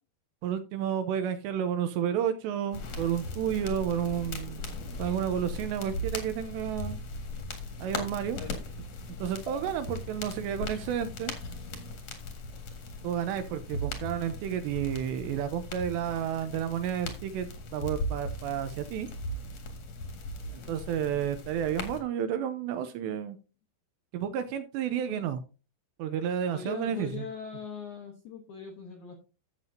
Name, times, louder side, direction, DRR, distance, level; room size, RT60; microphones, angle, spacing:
voice 1, 0.4-4.6 5.0-7.0 7.8-8.4 9.2-11.3 13.0-19.1 20.7-23.4 24.1-25.4 26.0-27.3, right 9 dB, 85° right, 9 dB, 2.7 m, -31 dB
sound 1, 2.7-22.0, left 1 dB, 55° left, 2.1 m, -38 dB
sound 2, 9.3-19.2, right 3 dB, 20° left, 1.0 m, -55 dB
voice 2, 26.5-29.1, left 6 dB, 75° left, 2 dB, 1.8 m, -41 dB
13.5 x 7.5 x 2.7 m, 0.32 s
omnidirectional pair, 5.4 m